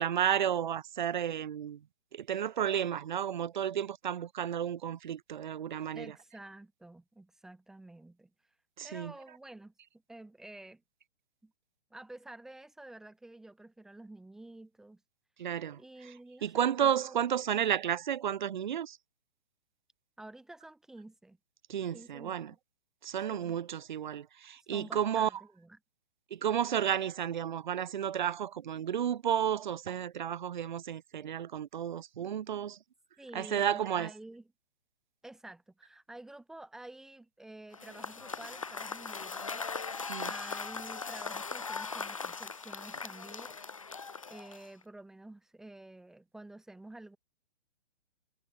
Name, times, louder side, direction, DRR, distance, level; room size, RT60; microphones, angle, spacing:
voice 1, 0.0-1.8 2.1-6.1 8.8-9.1 15.4-15.8 16.4-19.0 21.7-22.5 23.0-25.3 26.3-32.8 33.3-34.1 40.1-40.3, right 9 dB, 45° right, 1.3 m, -32 dB
voice 2, 5.9-8.3 8.8-9.7 10.1-10.8 11.4-11.5 11.9-15.0 15.8-17.2 20.2-21.4 21.9-22.6 24.7-25.8 33.2-34.5 35.2-43.6 44.3-47.2, right 2 dB, ahead, 1.2 m, -50 dB
Cheering / Applause / Crowd, 37.7-44.8, left 4 dB, 35° left, 0.4 m, -39 dB
hypercardioid pair, 175°, 33 cm